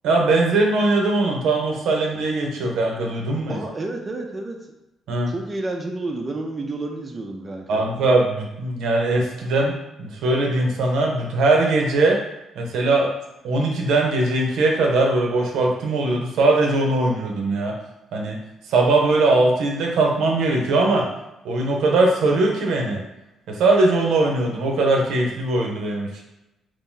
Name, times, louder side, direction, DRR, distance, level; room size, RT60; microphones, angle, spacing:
voice 1, 0.0-3.6 5.1-5.3 7.7-9.7 10.0-12.2 12.6-13.1 13.4-17.7 18.1-18.4 18.7-21.0 21.4-23.0 23.5-26.2, right 2 dB, 85° right, 0 dB, 0.7 m, -20 dB
voice 2, 3.5-4.6 5.3-7.8, right 2 dB, 30° right, 1 dB, 0.5 m, -30 dB
2.7 x 2.6 x 3.7 m, 0.94 s
cardioid pair, 90°, 0 cm